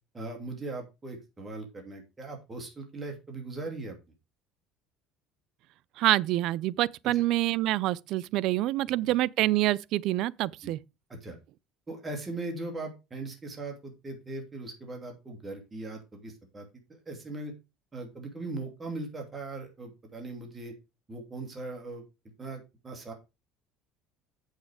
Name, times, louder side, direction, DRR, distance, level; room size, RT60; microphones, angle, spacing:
voice 1, 0.1-4.0 7.1-7.2 9.1-9.2 10.6-10.7 11.1-11.4 11.9-17.5 17.9-20.7 21.1-22.0 22.4-23.1, right 2 dB, 20° right, 2.8 m, -39 dB
voice 2, 6.0-10.8, right 15 dB, 65° right, 0.4 m, -26 dB
7.8 x 6.5 x 4.8 m
cardioid pair, 115°, 0 cm